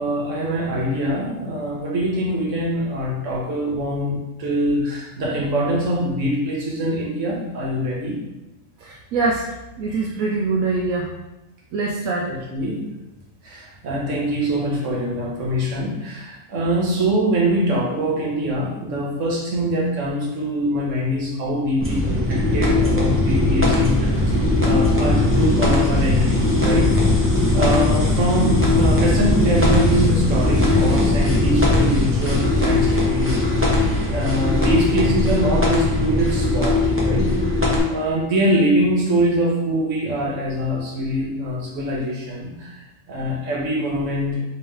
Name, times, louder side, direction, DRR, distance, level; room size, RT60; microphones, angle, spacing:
voice 1, 0.0-8.2 12.2-12.8 13.4-27.0 27.5-33.7 34.1-37.5 37.9-42.8 43.1-44.4, equal, 65° right, -3 dB, 1.4 m, -23 dB
voice 2, 8.8-9.5 9.8-11.1 11.7-12.3, right 3 dB, 85° right, -2 dB, 1.0 m, -23 dB
sound 1, 21.8-37.8, left 2 dB, 10° right, 0.8 m, -19 dB
3.5 x 3.1 x 4.7 m, 0.99 s
omnidirectional pair, 1.4 m